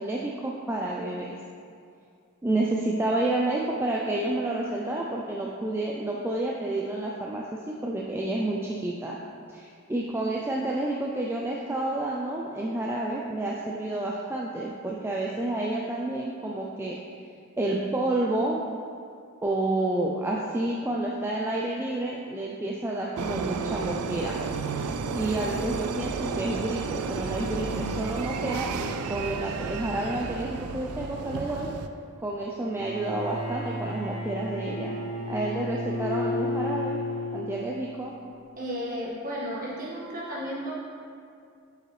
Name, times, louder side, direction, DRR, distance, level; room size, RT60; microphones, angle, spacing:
voice 1, 0.0-1.4 2.4-9.2 9.5-17.0 17.6-18.6 19.4-24.4 25.1-31.7 32.2-35.0 35.3-37.0 37.3-38.1, right 2 dB, 10° right, -3 dB, 0.3 m, -29 dB
sound 1, 23.2-31.9, right 4 dB, 90° right, 0.4 m, -32 dB
Bowed string instrument, 32.6-37.8, left 2 dB, 80° left, 1.6 m, -32 dB
voice 2, 38.6-40.9, equal, 40° right, -6 dB, 1.6 m, -33 dB
7.9 x 5.2 x 3.2 m, 2.3 s
head